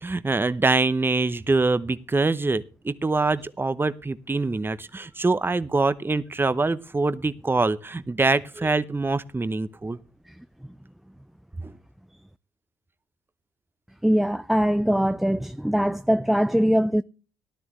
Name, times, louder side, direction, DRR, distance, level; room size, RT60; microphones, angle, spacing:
voice 1, 0.0-10.0 11.6-11.7, right 3 dB, 20° right, 0.8 m, -24 dB
voice 2, 14.0-17.0, equal, ahead, 0.4 m, -22 dB
15.0 x 12.0 x 3.2 m
hypercardioid pair, 50°, 12 cm